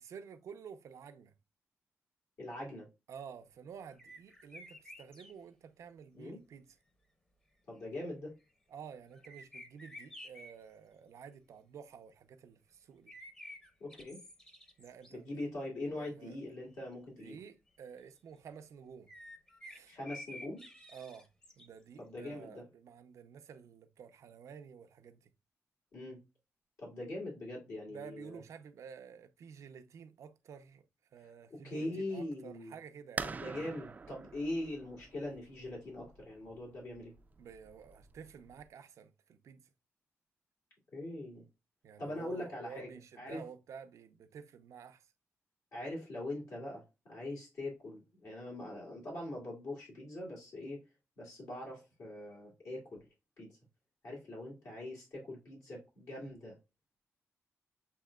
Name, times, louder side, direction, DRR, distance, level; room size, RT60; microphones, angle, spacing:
voice 1, 0.0-1.3 3.1-6.7 8.7-13.1 14.8-15.5 16.0-16.4 17.2-19.1 19.6-20.0 20.9-21.3 21.6-25.3 27.9-30.8 31.1-33.3 37.4-39.7 41.8-45.1, right 7 dB, 85° right, 0.6 m, -51 dB
voice 2, 2.4-2.9 6.1-6.4 7.7-8.3 13.8-14.2 15.1-17.4 19.9-20.6 22.0-22.6 25.9-26.2 26.8-28.4 31.5-32.7 33.2-37.1 40.9-41.5 42.0-42.9 43.2-43.4 45.7-46.8 47.1-50.8 51.2-52.9 53.4-53.6 54.0-56.6, left 1 dB, 70° left, 2.3 m, -42 dB
sound 1, 3.9-5.3 9.1-10.5 13.1-15.1 15.7-15.8 16.4-16.5 16.6-16.7 19.1-21.8, left 1 dB, 15° left, 0.8 m, -51 dB
sound 2, 33.2-38.6, right 4 dB, 30° right, 0.4 m, -45 dB
7.5 x 2.8 x 2.3 m
wide cardioid pair, 130°, 5 cm